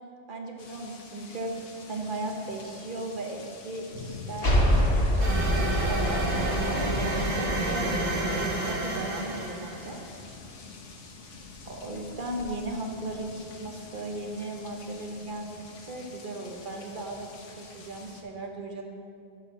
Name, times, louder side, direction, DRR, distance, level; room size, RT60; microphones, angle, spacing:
voice 1, 0.3-1.5 1.9-4.9 5.2-5.3 5.9-8.0 8.3-10.0 11.6-17.3 17.6-18.8, right 2 dB, 45° right, 2 dB, 1.0 m, -36 dB
sound 1, 0.6-18.2, left 3 dB, 80° left, 1.2 m, -44 dB
sound 2, 4.4-7.9, equal, 50° left, 1.4 m, -26 dB
sound 3, 5.2-9.9, right 1 dB, 70° right, 1.7 m, -29 dB
6.7 x 5.7 x 6.9 m, 2.5 s
omnidirectional pair, 1.2 m